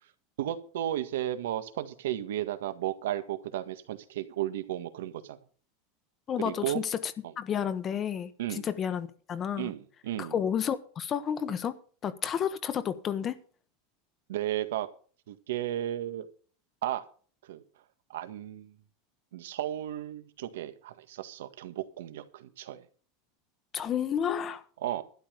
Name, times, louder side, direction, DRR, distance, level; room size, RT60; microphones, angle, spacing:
voice 1, 0.4-5.4 6.4-6.8 8.4-8.7 9.6-10.3 14.3-14.9 15.3-16.3 16.8-17.0 17.4-17.6 18.1-18.7 19.3-22.8 24.8-25.0, right 12 dB, 85° right, 1.7 m, -34 dB
voice 2, 6.3-9.7 10.2-13.4 23.7-24.6, left 8 dB, 35° left, 1.2 m, -31 dB
12.5 x 10.5 x 5.3 m
supercardioid pair, 120°, 0 cm